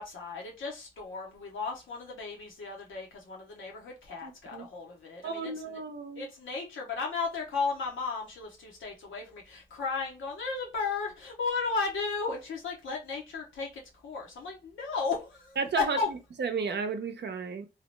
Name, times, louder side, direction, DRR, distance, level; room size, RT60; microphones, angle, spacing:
voice 1, 0.0-5.8 6.2-16.1, left 4 dB, 90° left, 0.8 m, -35 dB
voice 2, 4.2-4.7 5.2-6.3 15.6-17.7, right 5 dB, 60° right, 0.6 m, -33 dB
2.8 x 2.0 x 3.1 m
supercardioid pair, 40°, 20 cm